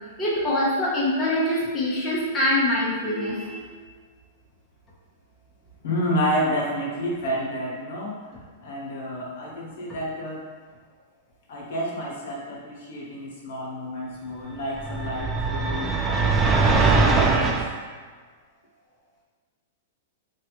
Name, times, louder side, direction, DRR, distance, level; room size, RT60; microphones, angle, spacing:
voice 1, 0.2-3.6, left 1 dB, 15° left, -7 dB, 0.8 m, -24 dB
voice 2, 5.8-8.2 8.6-10.5 11.5-17.6, equal, 70° left, -4 dB, 0.9 m, -30 dB
sound 1, 14.8-17.7, right 3 dB, 20° right, 0.3 m, -21 dB
3.2 x 2.4 x 2.9 m, 1.5 s
hypercardioid pair, 130°, 0 cm